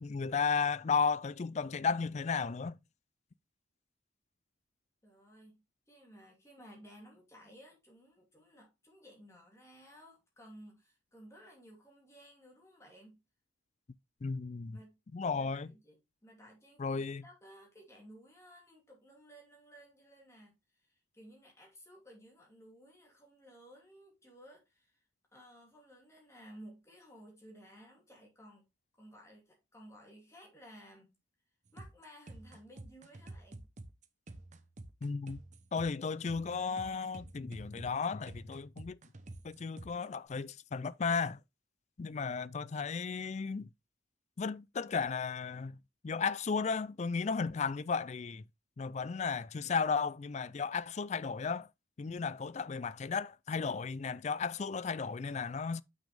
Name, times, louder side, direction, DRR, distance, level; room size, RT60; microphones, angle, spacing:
voice 1, 0.0-2.8 14.2-14.8 15.1-15.7 16.8-17.2 35.0-35.4 35.7-39.0 39.4-41.4 42.0-43.7 44.4-45.8 46.0-48.4 48.8-51.7 52.0-55.8, left 5 dB, 35° left, 0.3 m, -34 dB
voice 2, 5.0-13.2 14.7-15.0 15.3-25.0 25.3-28.6 29.0-31.1 31.7-33.7, equal, 15° left, 2.7 m, -56 dB
sound 1, 31.7-40.0, right 2 dB, 40° right, 0.8 m, -49 dB
7.3 x 6.1 x 3.4 m
head